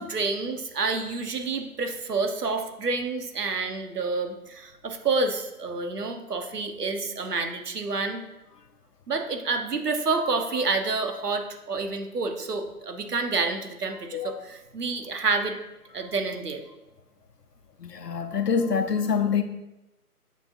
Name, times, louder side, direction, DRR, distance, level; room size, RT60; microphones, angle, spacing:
voice 1, 0.0-8.2 9.1-15.6 15.9-16.6, right 3 dB, 75° right, 1.3 m, -28 dB
voice 2, 17.8-19.4, left 6 dB, 85° left, 1.0 m, -25 dB
7.1 x 6.6 x 2.6 m
hypercardioid pair, 170°, 47 cm